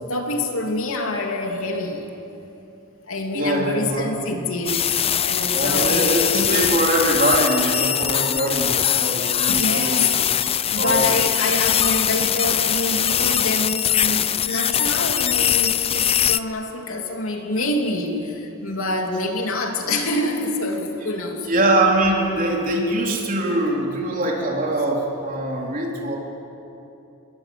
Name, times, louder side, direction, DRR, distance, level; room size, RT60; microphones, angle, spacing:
voice 1, 0.1-2.1 3.1-4.9 5.2-6.2 9.5-10.2 10.7-21.5, left 2 dB, 75° left, 2 dB, 3.0 m, -26 dB
voice 2, 3.3-4.1 5.5-10.1 10.8-11.1 21.4-26.2, right 1 dB, 40° right, -1 dB, 3.8 m, -22 dB
sound 1, 4.7-16.4, left 10 dB, 25° left, 0.5 m, -21 dB
27.5 x 22.5 x 7.8 m, 2.9 s
head